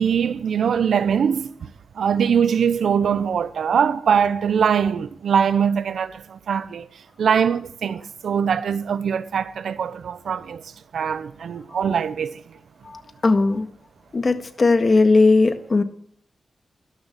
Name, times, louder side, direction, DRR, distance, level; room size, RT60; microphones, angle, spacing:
voice 1, 0.0-6.9 7.2-10.6 10.9-12.4, right 7 dB, 85° right, 0.7 m, -22 dB
voice 2, 13.2-13.7 14.1-15.8, left 3 dB, 50° left, 1.8 m, -17 dB
12.5 x 12.0 x 8.1 m
cardioid pair, 50°, 0 cm